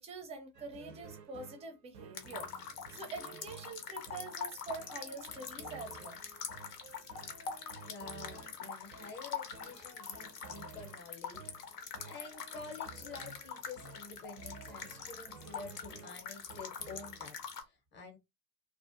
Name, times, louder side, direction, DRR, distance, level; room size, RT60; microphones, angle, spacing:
voice 1, 0.0-6.2, right 3 dB, 15° right, 0.5 m, -45 dB
sound 1, 0.5-17.3, right 5 dB, 85° right, 0.5 m, -54 dB
sound 2, 2.1-17.6, left 7 dB, 70° left, 0.7 m, -44 dB
voice 2, 7.8-18.2, left 4 dB, 20° left, 0.7 m, -49 dB
2.5 x 2.0 x 2.5 m
figure-of-eight pair, 70°, 49 cm